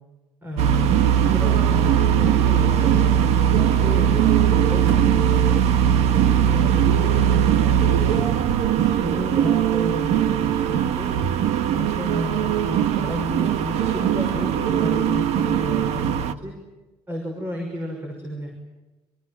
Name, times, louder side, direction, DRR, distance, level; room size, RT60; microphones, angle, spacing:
voice 1, 0.4-4.3 4.7-8.4 9.0-11.1 11.7-16.6 17.1-18.5, left 1 dB, 20° right, 2 dB, 6.1 m, -32 dB
sound 1, 0.6-16.3, right 9 dB, 85° right, 1.6 m, -20 dB
30.0 x 24.5 x 7.5 m, 1.1 s
cardioid pair, 175°, 11 cm